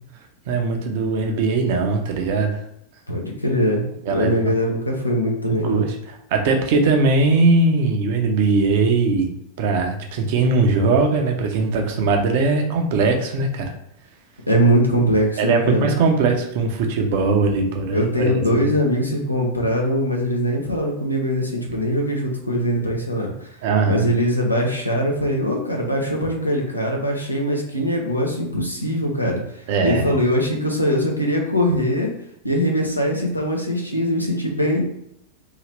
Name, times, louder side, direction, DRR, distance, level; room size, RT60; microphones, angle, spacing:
voice 1, 0.5-2.5 4.1-4.5 5.6-6.0 6.3-9.3 9.6-13.7 15.4-18.7 23.6-24.1 29.7-30.1, right 3 dB, 50° right, 3 dB, 0.7 m, -20 dB
voice 2, 3.1-3.8 4.1-5.9 14.5-15.9 17.9-23.5 23.9-32.1 32.4-34.8, equal, 90° left, 0 dB, 0.8 m, -21 dB
3.8 x 2.8 x 3.2 m, 0.74 s
figure-of-eight pair, 90°, 0 cm